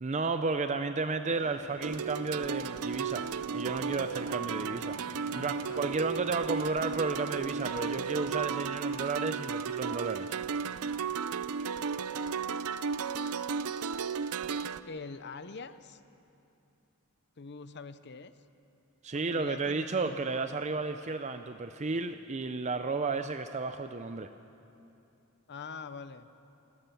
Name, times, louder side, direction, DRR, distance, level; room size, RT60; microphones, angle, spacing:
voice 1, 0.0-5.0 5.3-10.3 19.0-24.3, right 3 dB, 30° right, 9 dB, 0.5 m, -33 dB
sound 1, 1.3-8.2, right 2 dB, 60° right, 1.3 m, -51 dB
sound 2, 1.8-14.8, right 6 dB, 75° right, 0.5 m, -34 dB
voice 2, 5.3-5.9 14.8-16.0 17.4-18.3 19.1-20.3 25.5-26.3, left 4 dB, 50° left, 12 dB, 0.7 m, -44 dB
28.0 x 13.5 x 7.0 m, 2.8 s
head